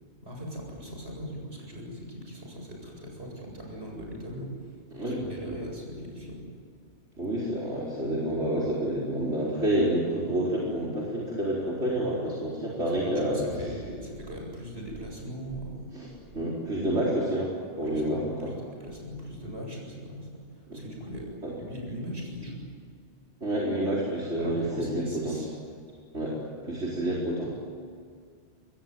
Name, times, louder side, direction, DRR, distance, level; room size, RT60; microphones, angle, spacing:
voice 1, 0.2-4.5 4.9-6.4 13.0-15.8 17.9-18.0 18.8-20.3 20.7-21.3 21.6-22.6 24.4-25.5, equal, 65° right, 0 dB, 7.9 m, -39 dB
voice 2, 4.9-5.3 7.2-13.4 15.9-16.1 16.3-18.6 20.7-20.8 21.4-21.5 23.4-25.5 26.1-26.4 26.6-27.5, right 1 dB, 85° right, -5 dB, 4.8 m, -29 dB
25.0 x 21.5 x 9.3 m, 2.1 s
omnidirectional pair, 1.1 m